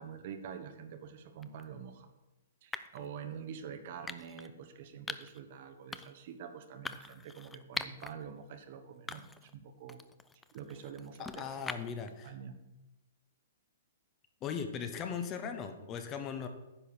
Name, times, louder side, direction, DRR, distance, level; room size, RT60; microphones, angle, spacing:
voice 1, 0.0-2.1 2.6-10.0 10.5-11.8 12.2-12.5, right 7 dB, 50° right, 7 dB, 1.0 m, -46 dB
sound 1, 1.4-1.7 2.7-3.1 4.1-4.5 5.1-5.4 5.9-6.3 6.9-8.1 8.5-8.6 9.1-9.5 9.9-12.1, left 3 dB, 10° left, 0.4 m, -43 dB
voice 2, 11.2-12.3 14.4-16.5, left 6 dB, 25° left, 7 dB, 0.9 m, -38 dB
9.9 x 4.3 x 7.1 m, 1.0 s
hypercardioid pair, 145°, 0 cm